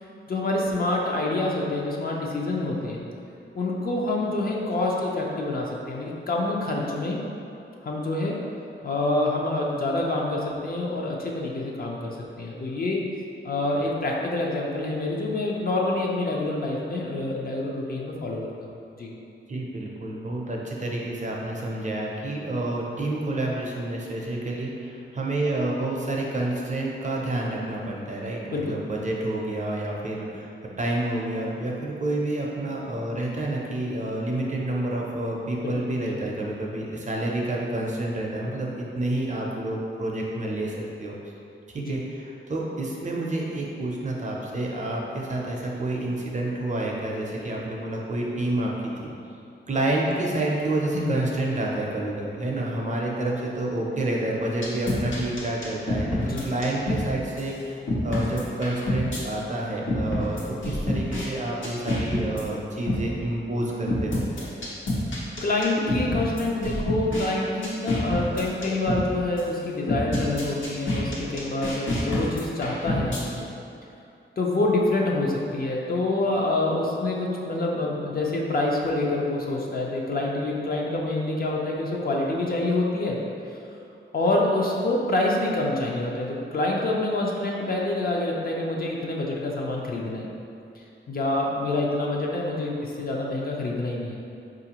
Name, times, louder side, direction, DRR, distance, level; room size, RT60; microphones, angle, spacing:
voice 1, 0.3-3.0 3.5-7.2 7.8-8.4 8.8-13.0 13.4-18.5 19.0-19.1 28.5-28.8 35.6-35.7 36.1-36.2 41.8-41.9 50.9-51.1 56.2-56.5 65.4-73.5 74.4-83.2 84.1-90.3 90.8-94.2, left 2 dB, 45° left, -2 dB, 0.5 m, -27 dB
voice 2, 19.5-30.5 30.8-40.7 41.0-41.1 41.7-48.7 49.0-49.1 49.7-57.8 58.0-64.2, right 1 dB, 35° right, -2 dB, 0.5 m, -29 dB
sound 1, 54.6-57.1 57.4-57.5 57.9-59.2 59.9-61.3 61.6-62.4 62.9-63.1 63.9-67.3 67.6-69.1 69.4-69.5 69.9-73.2, left 1 dB, 70° left, 0.9 m, -27 dB
4.6 x 2.5 x 2.8 m, 2.7 s
wide cardioid pair, 145°, 21 cm